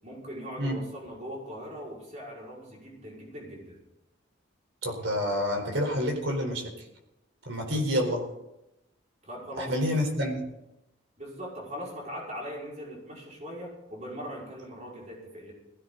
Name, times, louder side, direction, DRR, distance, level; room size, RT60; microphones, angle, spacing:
voice 1, 0.0-3.8 7.7-7.8 9.2-9.7 11.2-15.5, equal, 35° right, -4 dB, 5.5 m, -40 dB
voice 2, 4.8-6.6 7.5-8.2 9.6-10.4, equal, 70° right, 3 dB, 4.3 m, -28 dB
19.0 x 16.0 x 4.1 m, 0.89 s
head